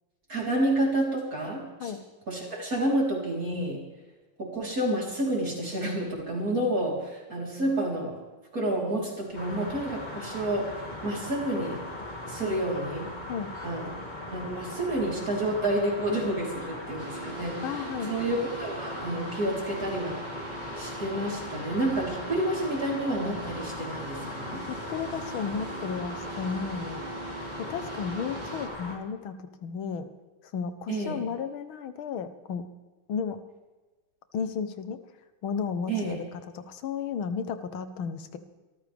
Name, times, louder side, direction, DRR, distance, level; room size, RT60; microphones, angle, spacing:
voice 1, 0.3-1.9 2.3-3.8 4.4-8.2 8.5-11.8 12.2-13.1 13.6-14.0 14.3-20.3 20.8-24.7 30.9-31.2 35.9-36.2, right 1 dB, 45° right, -3 dB, 4.3 m, -29 dB
sound 1, 9.3-29.0, left 1 dB, 20° left, 2.3 m, -39 dB
sound 2, 17.0-28.7, right 2 dB, 60° right, 2.9 m, -42 dB
voice 2, 17.6-18.1 24.7-27.0 27.6-30.1 30.5-32.6 33.1-33.4 34.3-35.0 35.4-38.4, left 6 dB, 85° left, 10 dB, 1.8 m, -33 dB
25.0 x 14.0 x 3.5 m, 1.2 s
omnidirectional pair, 2.2 m